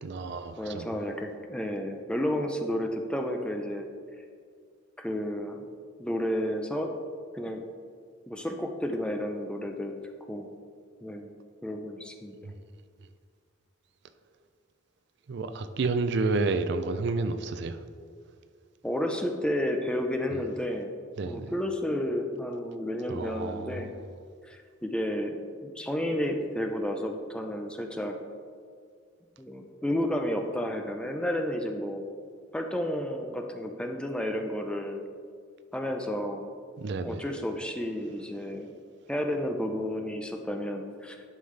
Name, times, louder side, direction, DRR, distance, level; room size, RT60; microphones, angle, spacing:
voice 1, 0.0-0.9 15.3-17.8 21.2-21.5 23.1-23.7 36.8-37.2, right 3 dB, 60° right, 10 dB, 0.4 m, -30 dB
voice 2, 0.6-3.9 5.0-5.7 6.0-6.9 7.3-7.6 8.3-10.0 10.3-10.5 11.0-11.3 11.6-12.4 18.8-23.9 24.5-28.2 29.4-32.0 32.5-35.0 35.7-36.4 37.0-38.7 39.1-41.2, equal, 5° left, 3 dB, 0.5 m, -31 dB
11.5 x 5.5 x 3.3 m, 2.1 s
head